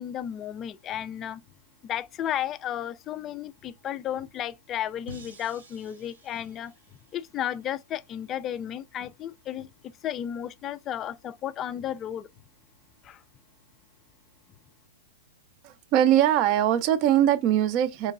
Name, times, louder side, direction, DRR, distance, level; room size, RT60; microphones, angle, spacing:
voice 1, 0.0-1.4 1.8-6.7 7.1-12.3 13.0-13.2, left 10 dB, 25° left, 0.3 m, -33 dB
sound 1, 5.1-8.2, right 2 dB, 90° right, 1.8 m, -50 dB
voice 2, 15.6-18.1, right 11 dB, 40° right, 0.5 m, -22 dB
4.4 x 3.0 x 2.4 m
hypercardioid pair, 140°, 0 cm